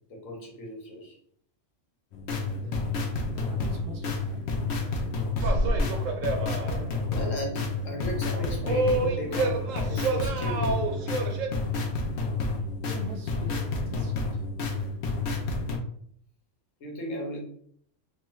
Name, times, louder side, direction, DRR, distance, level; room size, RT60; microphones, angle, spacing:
voice 1, 0.1-1.2 7.1-10.8 16.8-17.4, equal, 85° left, -1 dB, 1.3 m, -36 dB
sound 1, 2.1-15.8, left 3 dB, 65° left, 0.8 m, -30 dB
voice 2, 2.5-2.9 3.3-4.5 12.9-14.4, right 1 dB, 55° right, 0 dB, 0.7 m, -42 dB
sound 2, 5.4-7.0 7.2-7.4 8.2-11.5, right 2 dB, 85° right, 1.0 m, -28 dB
3.0 x 2.3 x 2.9 m, 0.62 s
omnidirectional pair, 1.3 m